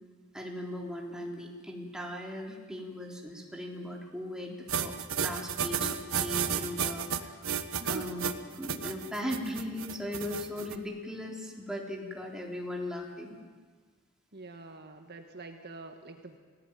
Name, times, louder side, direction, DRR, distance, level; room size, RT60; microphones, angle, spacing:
voice 1, 0.3-7.6 7.9-13.4, left 1 dB, 5° right, -1 dB, 3.8 m, -38 dB
sound 1, 4.7-10.7, right 7 dB, 70° right, 1.4 m, -32 dB
voice 2, 14.3-16.4, right 3 dB, 50° right, 5 dB, 1.6 m, -45 dB
30.0 x 18.5 x 9.2 m, 1.5 s
head